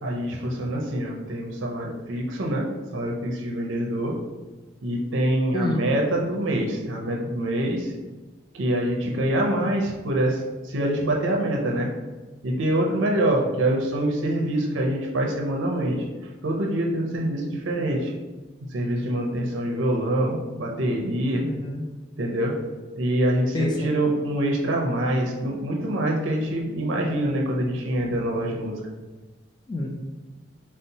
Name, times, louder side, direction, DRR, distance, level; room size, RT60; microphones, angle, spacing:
voice 1, 0.0-2.7 2.9-4.2 4.8-7.9 8.5-11.9 12.4-16.0 16.4-18.1 18.7-21.4 22.2-22.5 23.0-28.8, right 1 dB, 70° right, 0 dB, 0.5 m, -25 dB
voice 2, 5.5-5.8 9.3-9.7 13.4-13.5 21.4-21.8 23.5-23.9 29.7-29.9, left 1 dB, 20° left, 1 dB, 0.3 m, -28 dB
2.7 x 2.0 x 3.9 m, 1.2 s
head